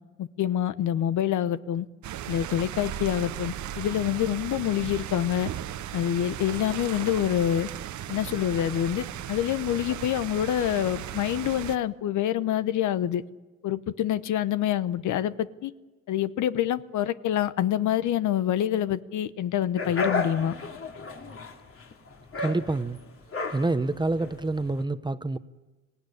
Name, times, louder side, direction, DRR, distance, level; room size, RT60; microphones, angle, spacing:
voice 1, 0.2-1.9 2.3-5.5 5.9-7.7 8.1-13.2 13.6-15.7 16.1-20.6, left 11 dB, 75° left, 0.9 m, -26 dB
sound 1, 2.0-11.8, right 11 dB, 75° right, 0.9 m, -36 dB
sound 2, 19.8-24.8, left 3 dB, 45° left, 2.7 m, -33 dB
voice 2, 22.4-23.0 23.5-25.4, right 2 dB, 15° right, 0.9 m, -27 dB
25.0 x 17.0 x 9.9 m
cardioid pair, 90°, 30 cm